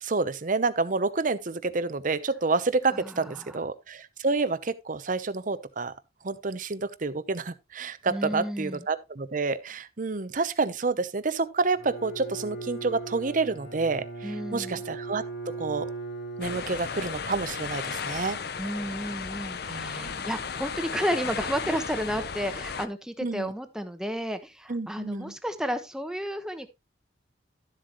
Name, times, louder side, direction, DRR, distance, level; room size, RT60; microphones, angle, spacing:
voice 1, 0.0-5.9 6.2-15.2 15.6-15.9 16.4-18.4 19.7-20.2 23.2-23.5 24.7-25.3, right 3 dB, 45° right, 0.8 m, -29 dB
voice 2, 2.9-3.6 8.1-8.9 14.2-14.8 18.6-26.7, equal, 5° right, 1.1 m, -32 dB
Bowed string instrument, 11.7-17.2, right 3 dB, 85° left, 3.7 m, -38 dB
sound 1, 16.4-22.9, left 6 dB, 60° left, 0.7 m, -35 dB
12.5 x 7.7 x 3.0 m
head